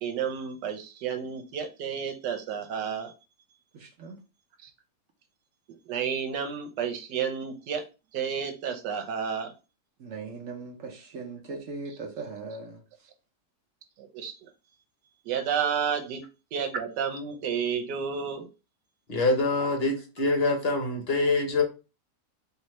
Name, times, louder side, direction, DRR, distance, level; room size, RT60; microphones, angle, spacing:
voice 1, 0.0-3.1 4.6-4.7 5.9-7.8 8.1-9.5 14.0-14.5 15.2-16.2 16.5-18.5, right 7 dB, 85° right, 1.4 m, -31 dB
voice 2, 3.7-4.2 10.0-12.8, right 4 dB, 60° right, 0.9 m, -39 dB
voice 3, 19.1-21.6, left 2 dB, 50° left, 0.8 m, -25 dB
4.6 x 2.7 x 3.1 m
omnidirectional pair, 1.8 m